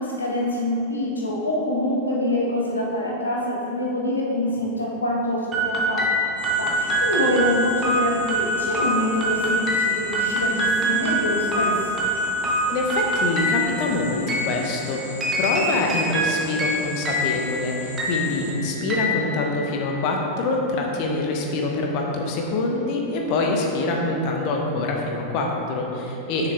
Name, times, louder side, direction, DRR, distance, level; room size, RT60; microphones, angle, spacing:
voice 1, 0.0-6.1 6.6-11.7 21.2-21.3, left 1 dB, 75° left, -3 dB, 1.2 m, -25 dB
sound 1, 5.5-20.0, right 1 dB, 25° right, 1.1 m, -25 dB
sound 2, 6.4-18.5, equal, 90° right, 1.5 m, -40 dB
voice 2, 12.7-15.0 15.3-26.5, left 2 dB, 45° left, 0 dB, 1.0 m, -25 dB
6.8 x 6.0 x 3.5 m, 2.8 s
figure-of-eight pair, 90°, 0 cm